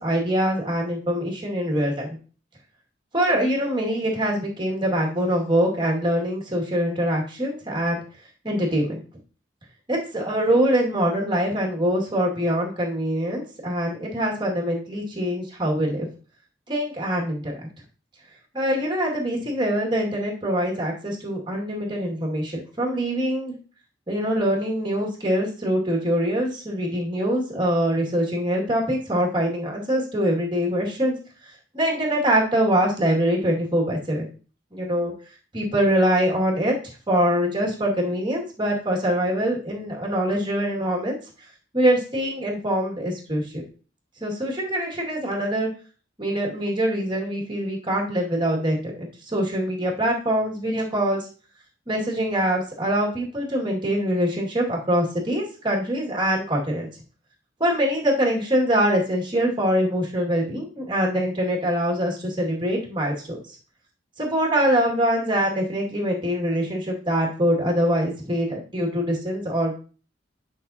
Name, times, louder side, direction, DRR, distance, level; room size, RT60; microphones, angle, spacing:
voice 1, 0.0-2.1 3.1-8.0 8.4-9.0 9.9-16.1 16.7-17.7 18.5-23.5 24.1-31.1 31.7-34.3 34.7-35.1 35.5-36.8 37.1-41.2 41.7-43.6 44.2-45.7 46.2-51.3 51.9-56.9 57.6-63.6 64.2-69.7, equal, 25° right, -1 dB, 2.1 m, -24 dB
10.0 x 5.5 x 2.8 m, 0.38 s
head